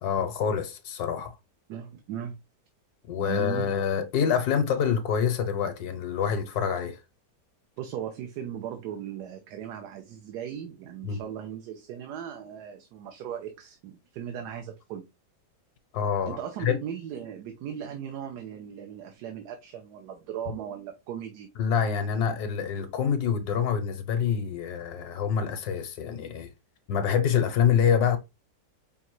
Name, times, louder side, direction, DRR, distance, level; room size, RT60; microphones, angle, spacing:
voice 1, 0.0-1.4 3.1-7.0 11.0-11.2 15.9-16.8 21.6-26.5 26.9-28.2, left 7 dB, 75° left, 1.1 m, -26 dB
voice 2, 1.7-2.4 3.2-3.7 7.8-15.1 16.2-21.5, right 9 dB, 75° right, 1.2 m, -37 dB
5.4 x 2.4 x 3.0 m
omnidirectional pair, 1.8 m